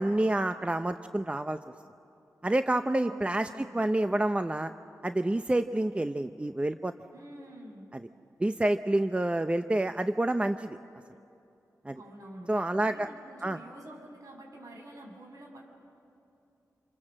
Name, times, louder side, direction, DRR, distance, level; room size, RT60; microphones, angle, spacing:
voice 1, 0.0-1.6 2.4-4.7 5.0-6.9 7.9-8.1 8.4-10.8 11.8-12.0 12.5-13.1 13.4-13.6, right 1 dB, 20° right, 9 dB, 0.7 m, -28 dB
voice 2, 3.0-3.8 7.1-7.9 11.9-15.7, right 1 dB, 65° right, 1 dB, 6.7 m, -48 dB
28.0 x 25.5 x 7.6 m, 2.7 s
cardioid pair, 60°, 6 cm